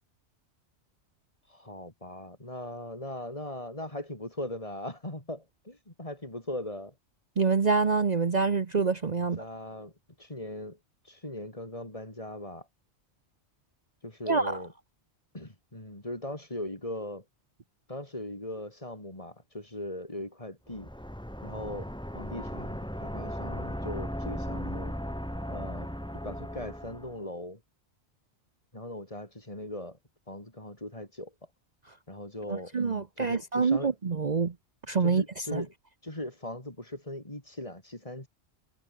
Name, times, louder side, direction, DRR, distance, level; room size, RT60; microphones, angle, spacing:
voice 1, 1.5-6.9 9.1-9.9 10.2-10.8 11.0-12.7 14.0-14.7 15.3-17.2 17.9-20.9 21.4-24.9 25.5-25.9 26.2-27.6 28.7-30.0 30.3-31.3 32.1-33.9 35.0-35.7 36.0-38.3, left 1 dB, 30° left, 4.0 m, -39 dB
voice 2, 7.4-9.4 14.3-14.6 32.5-34.5 34.9-35.2 35.5-35.6, right 5 dB, 40° right, 1.0 m, -26 dB
sound 1, 20.7-27.2, equal, 5° left, 3.0 m, -37 dB
omnidirectional pair, 1.1 m